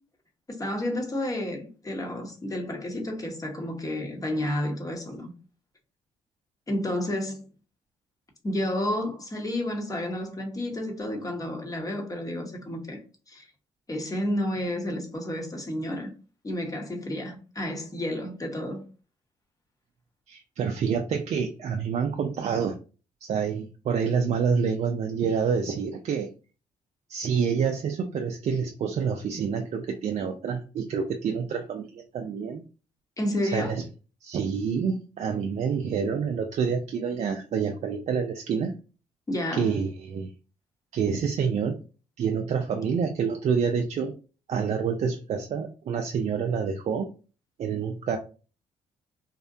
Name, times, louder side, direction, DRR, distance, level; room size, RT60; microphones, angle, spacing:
voice 1, 0.5-5.3 6.7-7.4 8.4-13.0 13.3-13.5 13.9-16.1 16.4-18.8 33.2-33.8 39.3-39.7, left 1 dB, 25° left, 0.9 m, -31 dB
voice 2, 20.3-22.8 23.2-26.3 27.1-32.6 33.5-33.8 34.2-38.7 39.5-40.3 40.9-41.8 42.2-44.1 44.5-47.1 47.6-48.2, right 6 dB, 50° right, 0.4 m, -27 dB
2.6 x 2.1 x 2.5 m
supercardioid pair, 65°, 15 cm